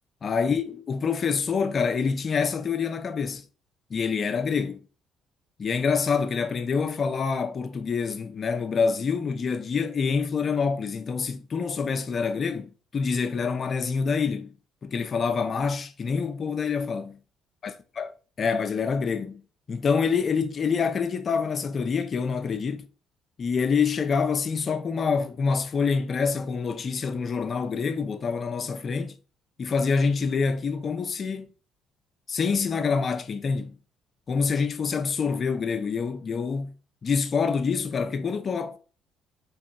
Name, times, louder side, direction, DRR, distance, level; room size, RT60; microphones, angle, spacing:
voice 1, 0.2-3.4 3.9-4.8 5.6-14.5 14.8-17.1 17.6-18.1 18.4-19.4 19.7-22.9 23.4-29.2 29.6-31.5 32.3-33.8 34.3-36.7 37.0-38.8, left 5 dB, 40° left, 0.4 m, -26 dB
4.4 x 2.9 x 2.3 m
figure-of-eight pair, 45°, 0 cm